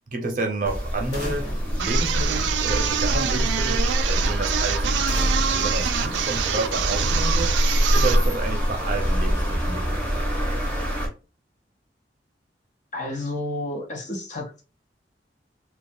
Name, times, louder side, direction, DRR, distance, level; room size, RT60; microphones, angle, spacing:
voice 1, 0.1-1.5 1.8-3.8 4.1-5.0 5.5-7.5 7.9-10.5, right 3 dB, 50° right, 3 dB, 0.6 m, -30 dB
sound 1, 0.6-11.1, equal, 10° left, 0.8 m, -25 dB
sound 2, 1.1-2.9 5.1-6.8, equal, 70° left, 1.1 m, -39 dB
sound 3, 1.8-8.3, right 7 dB, 85° right, 0.3 m, -26 dB
voice 2, 12.9-14.6, left 2 dB, 45° left, 1 dB, 0.7 m, -31 dB
2.3 x 2.2 x 2.6 m, 0.33 s
head